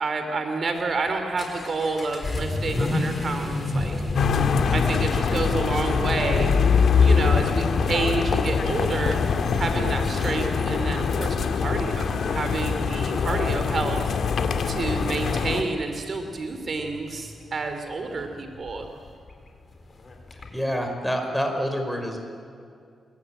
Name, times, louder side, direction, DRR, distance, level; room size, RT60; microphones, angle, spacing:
voice 1, 0.0-3.9 4.7-6.6 7.0-14.2 14.6-18.9, right 3 dB, 45° right, 6 dB, 2.8 m, -29 dB
Vehicle / Accelerating revving vroom, 0.8-20.6, left 2 dB, 35° left, 4.6 m, -35 dB
sound 1, 4.1-15.6, left 5 dB, 65° left, 2.2 m, -23 dB
voice 2, 20.5-22.2, equal, ahead, 4 dB, 5.0 m, -27 dB
26.5 x 23.5 x 8.9 m, 2.3 s
cardioid pair, 110°, 0 cm